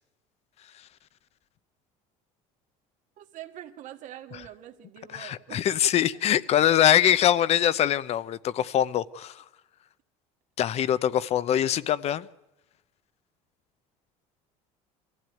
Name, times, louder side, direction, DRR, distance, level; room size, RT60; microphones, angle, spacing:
voice 1, 3.2-5.8, right 12 dB, 60° right, 7 dB, 1.6 m, -44 dB
voice 2, 5.1-9.4 10.6-12.3, left 10 dB, 45° left, 17 dB, 0.7 m, -23 dB
23.5 x 15.0 x 9.1 m, 0.94 s
cardioid pair, 130°, 15 cm